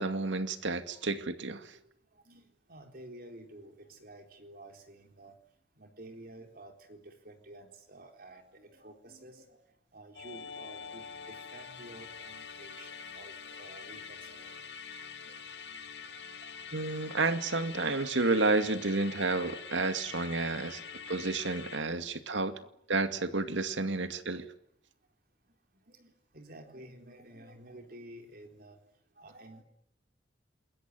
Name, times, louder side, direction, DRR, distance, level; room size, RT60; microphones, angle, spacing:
voice 1, 0.0-1.7 16.7-20.8 21.1-22.6 22.9-24.5, right 3 dB, 90° right, 9 dB, 2.2 m, -31 dB
voice 2, 2.1-5.4 5.8-9.6 9.9-15.0 15.3-15.4 16.4-16.6 18.6-19.9 20.8-20.9 22.0-22.2 22.6-22.8 23.1-23.4 23.8-24.1 25.9-28.8 29.2-29.6, right 1 dB, 50° right, 5 dB, 4.0 m, -52 dB
Musical instrument, 10.1-21.8, left 6 dB, 65° left, 2.4 m, -45 dB
28.5 x 21.5 x 9.6 m, 0.71 s
head